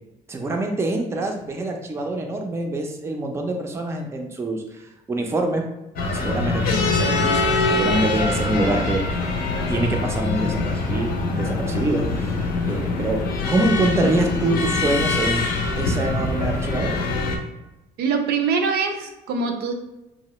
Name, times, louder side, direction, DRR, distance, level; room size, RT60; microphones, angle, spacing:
voice 1, 0.3-5.7 6.1-9.0 9.7-12.4 12.7-13.2 13.5-15.4 15.8-17.0, right 2 dB, 15° right, 2 dB, 0.4 m, -25 dB
sound 1, 6.0-17.4, left 3 dB, 60° left, 0.6 m, -23 dB
voice 2, 18.0-19.7, right 5 dB, 70° right, 5 dB, 0.5 m, -23 dB
2.9 x 2.0 x 3.0 m, 0.97 s
cardioid pair, 110°, 17 cm